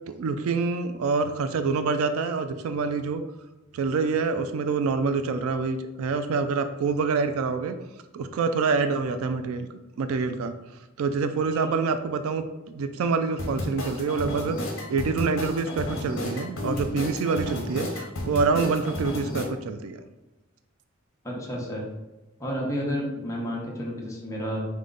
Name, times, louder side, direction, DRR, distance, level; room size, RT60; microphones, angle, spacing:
voice 1, 0.1-3.2 3.7-7.8 8.1-9.7 10.0-10.5 11.0-14.6 14.9-20.0, right 4 dB, 85° right, 9 dB, 0.3 m, -26 dB
sound 1, 13.4-19.4, left 1 dB, 70° left, 0.9 m, -32 dB
voice 2, 21.2-21.8 22.4-24.6, equal, 15° left, -3 dB, 0.9 m, -31 dB
5.0 x 2.1 x 3.8 m, 1.1 s
head